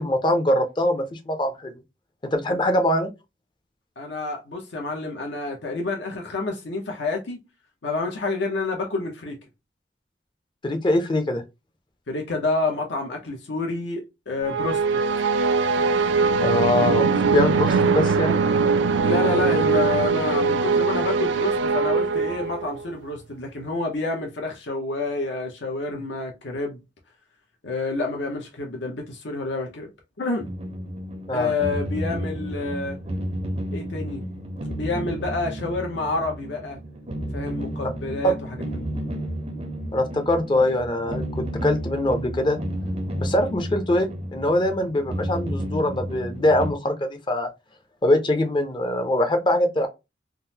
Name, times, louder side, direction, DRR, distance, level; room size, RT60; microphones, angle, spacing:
voice 1, 0.0-1.7 2.2-3.1 10.6-11.4 16.4-18.4 31.3-31.5 38.2-38.3 39.9-42.6 43.1-47.5 48.0-49.9, left 1 dB, 25° left, 0.5 m, -23 dB
voice 2, 4.0-7.4 7.8-9.4 12.1-15.0 19.0-26.8 27.6-29.9 30.2-30.5 31.3-33.0 33.7-34.3 34.7-36.8 37.3-38.3 38.7-38.9, left 3 dB, 75° left, 0.7 m, -28 dB
sound 1, 14.4-22.9, right 4 dB, 85° right, 0.4 m, -21 dB
sound 2, 30.4-46.7, equal, 35° right, 0.5 m, -32 dB
3.7 x 2.0 x 2.7 m
head